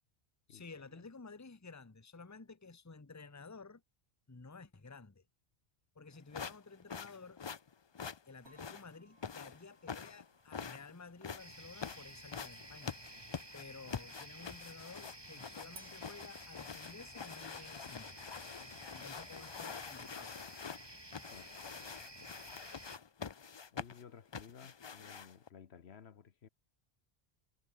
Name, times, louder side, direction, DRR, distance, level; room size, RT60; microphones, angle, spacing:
voice 1, 0.5-3.8 4.3-5.2 5.9-7.4 8.3-13.0 13.5-18.1 18.9-20.5, left 4 dB, 15° left, 1.0 m, -53 dB
sound 1, 6.3-25.5, left 6 dB, 40° left, 0.4 m, -46 dB
sound 2, 8.5-14.0 15.7-20.7, right 3 dB, 80° right, 4.0 m, -66 dB
sound 3, 11.4-23.0, right 1 dB, 20° right, 3.3 m, -53 dB
voice 2, 23.7-26.5, left 7 dB, 70° left, 1.3 m, -55 dB
omnidirectional pair, 1.1 m